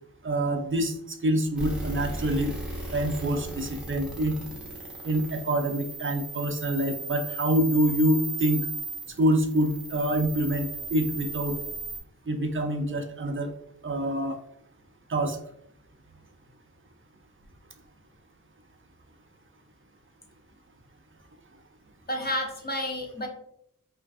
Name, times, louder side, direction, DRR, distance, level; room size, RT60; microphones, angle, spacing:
voice 1, 0.2-2.5 2.9-4.3 5.0-8.6 9.2-11.6 12.3-13.5 13.8-14.4 15.1-15.4, right 1 dB, 35° right, 5 dB, 0.4 m, -26 dB
sound 1, 1.6-12.0, right 2 dB, 5° right, 0.8 m, -36 dB
voice 2, 22.1-23.3, left 1 dB, 25° left, 1 dB, 0.6 m, -30 dB
2.5 x 2.3 x 2.3 m, 0.73 s
wide cardioid pair, 40°, 35 cm